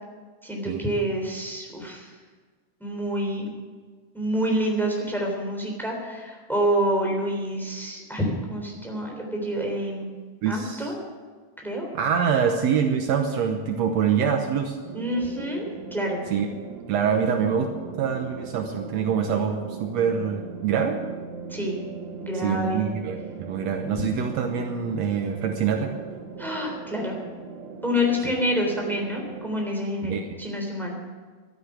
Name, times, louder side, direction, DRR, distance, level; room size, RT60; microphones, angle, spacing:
voice 1, 0.4-2.1 2.8-3.5 4.1-10.1 10.4-11.0 11.6-11.9 14.9-16.2 21.5-21.8 22.2-22.8 26.4-27.2 27.8-30.9, equal, ahead, 1 dB, 3.1 m, -27 dB
voice 2, 10.4-10.9 11.9-14.8 16.3-16.5 16.9-17.7 18.0-21.0 22.3-25.9 28.2-28.3 30.0-30.3, right 7 dB, 70° right, 4 dB, 2.0 m, -25 dB
sound 1, 14.8-29.5, right 5 dB, 50° right, 1.6 m, -39 dB
12.5 x 9.9 x 9.4 m, 1.5 s
omnidirectional pair, 3.4 m